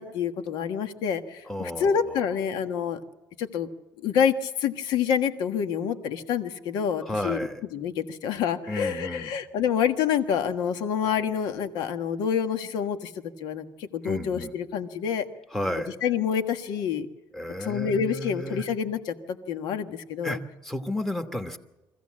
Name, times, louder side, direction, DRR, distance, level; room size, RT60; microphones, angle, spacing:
voice 1, 0.0-3.0 3.4-3.7 4.0-7.4 7.7-13.1 13.4-15.2 16.0-17.1 17.6-20.4, left 7 dB, 75° left, 8 dB, 1.5 m, -27 dB
voice 2, 1.5-2.2 7.0-7.6 8.7-9.3 14.0-14.5 15.5-15.9 17.3-18.6 20.2-21.6, left 1 dB, 5° left, 6 dB, 1.2 m, -32 dB
23.5 x 15.5 x 7.5 m, 1.1 s
cardioid pair, 170°, 7 cm